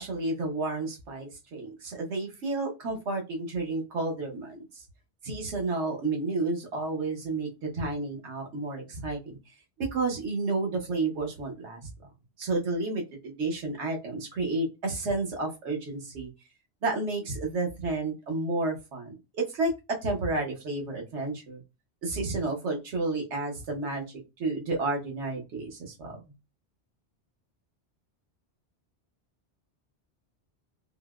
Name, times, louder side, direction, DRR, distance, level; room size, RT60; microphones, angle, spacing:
voice 1, 0.0-4.8 5.2-9.4 9.8-11.9 12.4-16.3 16.8-19.7 20.0-21.6 22.0-24.0 24.4-26.2, right 3 dB, 85° right, 1 dB, 1.2 m, -31 dB
3.8 x 2.1 x 2.3 m, 0.26 s
omnidirectional pair, 1.2 m